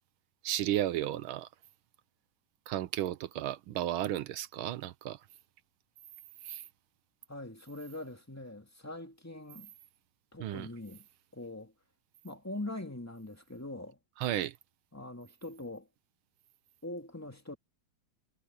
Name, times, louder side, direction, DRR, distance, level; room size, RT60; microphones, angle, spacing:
voice 1, 0.4-1.5 2.7-5.2 6.4-6.6 10.4-10.7 14.2-14.5, right 13 dB, 85° right, 1.6 m, -33 dB
voice 2, 7.3-9.7 10.3-11.1 11.3-11.7 12.2-14.0 14.9-15.9 16.8-17.6, left 2 dB, 10° left, 2.2 m, -42 dB
omnidirectional pair, 2.2 m